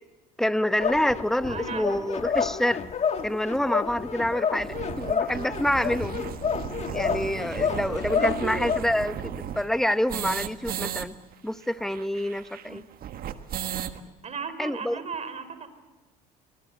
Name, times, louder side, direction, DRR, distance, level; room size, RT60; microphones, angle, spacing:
voice 1, 0.4-2.8 3.2-6.2 6.9-11.1 11.4-12.8 14.6-15.0, left 1 dB, ahead, 13 dB, 0.9 m, -27 dB
sound 1, 0.8-8.8, left 6 dB, 35° left, 1.5 m, -29 dB
voice 2, 1.5-2.0 8.1-9.3 12.6-12.8 14.2-15.7, right 5 dB, 35° right, 10 dB, 3.8 m, -36 dB
sound 2, 2.4-2.5 3.2-3.3 3.5-3.6 3.9-4.0 4.4-11.1 11.3-11.4 11.6-14.0, right 10 dB, 50° right, 1.5 m, -35 dB
24.0 x 20.0 x 7.9 m, 1.2 s
hypercardioid pair, 75°, 19 cm